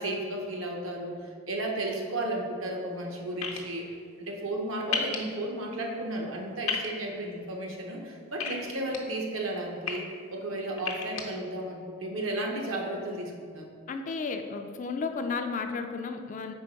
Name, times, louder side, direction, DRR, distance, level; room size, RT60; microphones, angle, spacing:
voice 1, 0.0-10.0 10.3-13.7, right 1 dB, 70° right, 0 dB, 0.9 m, -34 dB
sound 1, 3.4-3.6 4.9-5.2 6.7-6.9 8.4-9.0 9.6-9.9 10.8-11.2, left 6 dB, 80° left, 0.7 m, -31 dB
voice 2, 13.9-16.5, left 4 dB, 35° left, 6 dB, 0.3 m, -33 dB
4.5 x 4.1 x 5.1 m, 2.1 s
head